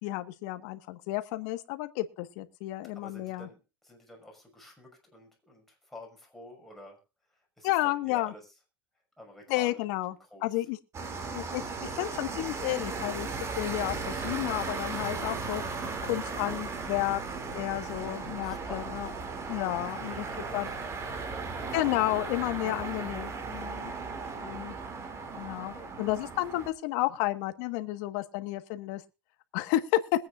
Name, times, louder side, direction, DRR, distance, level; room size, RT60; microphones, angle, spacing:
voice 1, 0.0-3.5 7.6-8.3 9.5-10.1 10.4-10.8 11.3-13.3 13.6-19.1 19.5-20.2 20.5-20.7 21.7-23.9 24.4-24.7 25.3-29.0 29.5-30.0, left 16 dB, 55° left, 10 dB, 1.5 m, -31 dB
voice 2, 2.9-7.0 7.3-8.4 9.2-9.8 10.1-10.5 18.4-19.1 19.8-21.0 21.3-22.2 25.7-26.0, left 1 dB, ahead, 0 dB, 6.1 m, -50 dB
sound 1, 10.9-26.7, right 4 dB, 25° right, 2.8 m, -36 dB
22.0 x 9.5 x 2.5 m, 0.28 s
supercardioid pair, 140°, 12 cm